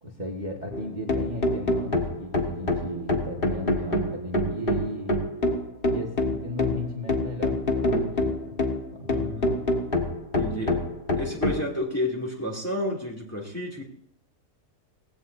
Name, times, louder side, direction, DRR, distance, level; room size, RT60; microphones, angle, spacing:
voice 1, 0.0-5.1 5.9-8.6 8.9-9.3, equal, 30° right, -2 dB, 1.9 m, -35 dB
sound 1, 0.7-11.6, left 1 dB, 35° left, 1.7 m, -26 dB
voice 2, 9.1-9.6 10.3-10.8 11.2-13.8, left 1 dB, 10° left, -2 dB, 2.5 m, -31 dB
19.5 x 16.0 x 2.7 m, 0.66 s
omnidirectional pair, 1.7 m